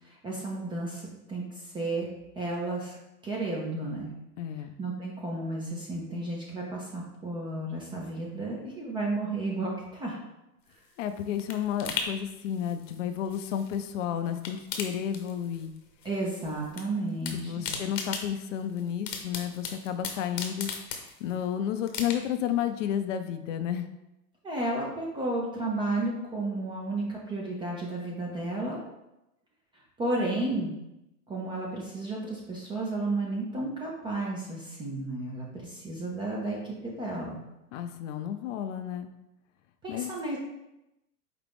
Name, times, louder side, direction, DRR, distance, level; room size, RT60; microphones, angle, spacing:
voice 1, 0.0-2.1 2.4-3.0 3.2-4.1 4.8-10.2 16.0-17.7 24.4-28.8 30.0-30.7 31.3-37.4 39.8-40.4, right 2 dB, 10° right, -3 dB, 0.4 m, -32 dB
voice 2, 4.4-4.8 11.0-15.7 17.3-20.7 21.2-23.9 37.7-39.1 39.9-40.1, left 9 dB, 50° left, 8 dB, 0.5 m, -32 dB
sound 1, 10.7-14.0 14.3-15.8 16.0-16.8 17.1-21.4 21.9-22.5 22.9-23.0, left 6 dB, 85° left, 1.0 m, -38 dB
5.0 x 2.8 x 3.5 m, 0.92 s
hypercardioid pair, 110°, 48 cm